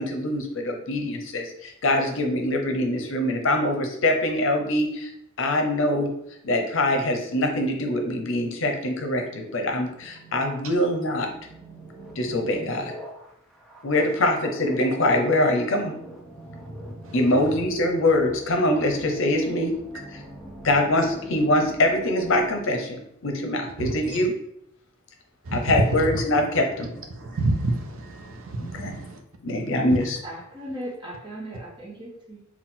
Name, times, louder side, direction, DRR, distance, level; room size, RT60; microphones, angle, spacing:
voice 1, 0.0-5.1 5.4-6.1 6.4-11.3 12.2-12.9 13.8-15.9 17.1-19.7 20.1-20.2 20.6-24.3 25.5-26.9 28.6-28.9 29.4-30.2, left 1 dB, 65° left, 4 dB, 0.7 m, -24 dB
sound 1, 6.2-22.6, right 1 dB, ahead, 0.6 m, -43 dB
voice 2, 25.5-26.0 27.1-29.2, right 2 dB, 80° right, 4 dB, 0.6 m, -27 dB
voice 3, 30.2-32.5, right 1 dB, 25° right, -2 dB, 1.0 m, -37 dB
4.3 x 2.3 x 3.7 m, 0.75 s
head